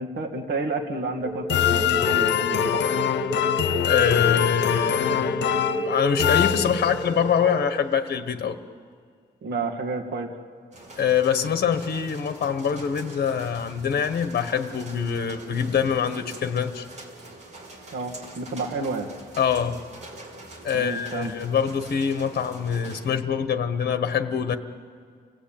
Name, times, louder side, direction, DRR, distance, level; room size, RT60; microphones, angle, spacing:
voice 1, 0.0-2.8 9.4-10.3 17.9-19.1 20.7-21.3, right 3 dB, 75° right, 3 dB, 2.1 m, -30 dB
sound 1, 1.2-7.7, right 1 dB, ahead, 6.9 m, -30 dB
sound 2, 1.5-7.2, left 11 dB, 85° left, 0.9 m, -24 dB
voice 2, 3.8-8.6 11.0-16.9 19.4-19.8 20.6-24.6, left 7 dB, 60° left, 9 dB, 1.3 m, -24 dB
sound 3, 10.7-23.1, right 2 dB, 40° right, 3.5 m, -44 dB
29.5 x 18.5 x 8.9 m, 2.1 s
wide cardioid pair, 140°, 18 cm